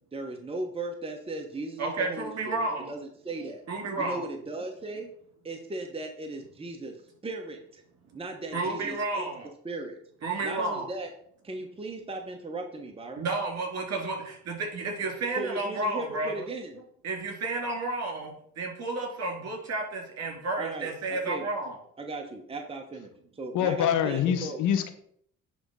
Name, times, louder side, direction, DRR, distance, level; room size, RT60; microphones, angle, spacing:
voice 1, 0.1-3.6 4.0-5.1 5.4-7.0 7.2-7.8 8.1-9.3 9.6-10.0 10.4-11.1 11.4-13.2 15.4-16.8 20.6-21.4 22.0-24.6, right 2 dB, 20° right, 3 dB, 1.1 m, -37 dB
voice 2, 1.8-2.9 3.7-4.3 8.5-9.5 10.2-10.9 13.2-16.5 17.0-21.8, right 2 dB, 55° right, 1 dB, 3.3 m, -31 dB
voice 3, 23.5-24.9, left 9 dB, 80° left, 9 dB, 1.0 m, -25 dB
10.0 x 3.6 x 5.6 m, 0.65 s
cardioid pair, 90°, 30 cm